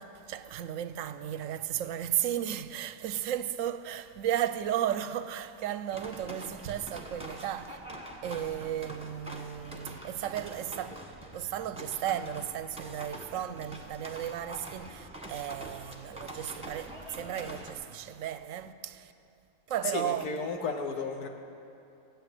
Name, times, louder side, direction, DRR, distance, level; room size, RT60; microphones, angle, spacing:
voice 1, 0.0-7.8 8.2-19.1 19.7-20.3, right 10 dB, 70° right, 0.9 m, -34 dB
sound 1, 5.9-17.7, right 1 dB, 5° right, 1.1 m, -45 dB
voice 2, 19.8-21.3, left 4 dB, 80° left, 1.4 m, -33 dB
15.0 x 8.6 x 7.7 m
omnidirectional pair, 1.6 m